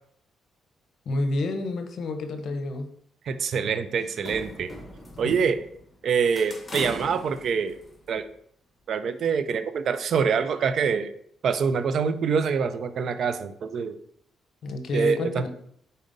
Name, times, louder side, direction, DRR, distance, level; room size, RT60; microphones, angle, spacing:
voice 1, 1.1-2.9 5.2-5.3 14.6-15.5, left 2 dB, 60° left, 7 dB, 0.7 m, -29 dB
voice 2, 3.2-4.7 5.2-5.6 6.0-7.8 8.1-8.2 8.9-11.1 11.4-14.0 14.9-15.5, right 6 dB, 60° right, 11 dB, 0.4 m, -25 dB
sound 1, 4.0-5.9 6.4-8.2, left 1 dB, 20° left, 1.0 m, -40 dB
5.0 x 4.1 x 2.6 m, 0.67 s
cardioid pair, 90°, 0 cm